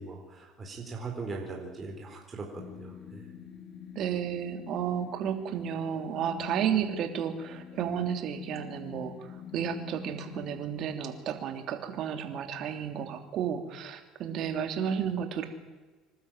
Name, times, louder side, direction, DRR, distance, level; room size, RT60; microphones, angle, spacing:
voice 1, 0.0-3.3, right 3 dB, 25° right, 1 dB, 4.2 m, -40 dB
sound 1, 2.6-10.7, left 9 dB, 45° left, 2.2 m, -45 dB
voice 2, 3.9-9.1 9.5-15.5, right 8 dB, 55° right, 6 dB, 3.0 m, -32 dB
25.5 x 12.5 x 9.0 m, 1.3 s
supercardioid pair, 105°, 0 cm